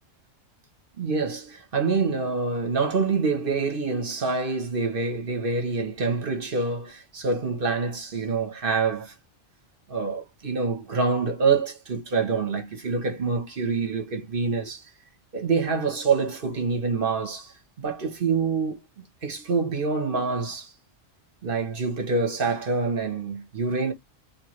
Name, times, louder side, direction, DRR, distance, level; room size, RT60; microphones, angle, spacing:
voice 1, 1.0-9.1 9.9-14.8 15.3-18.8 19.2-20.7 21.4-23.9, right 4 dB, 50° right, 1.2 m, -26 dB
4.4 x 3.0 x 3.1 m
omnidirectional pair, 1.2 m